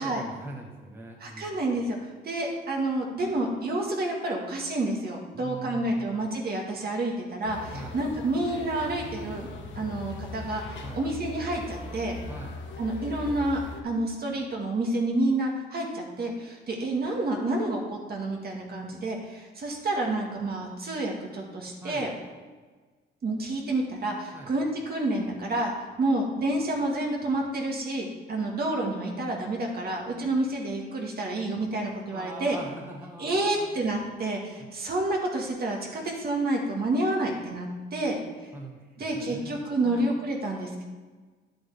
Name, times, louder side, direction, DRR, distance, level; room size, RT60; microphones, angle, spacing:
voice 1, 0.0-1.5 5.3-6.1 7.7-8.0 10.8-11.0 12.3-12.6 21.8-22.1 24.3-24.5 32.1-33.7 38.5-38.8 39.1-40.1, right 2 dB, 10° right, -1 dB, 1.2 m, -42 dB
voice 2, 1.2-2.0 2.2-9.5 9.8-12.2 12.8-22.1 23.2-25.7 26.0-32.6 33.2-38.2 39.0-40.8, right 2 dB, 50° right, 0 dB, 2.0 m, -29 dB
sound 1, 7.4-13.8, left 2 dB, 70° left, 1.4 m, -39 dB
10.0 x 7.8 x 3.6 m, 1.4 s
cardioid pair, 90°, 20 cm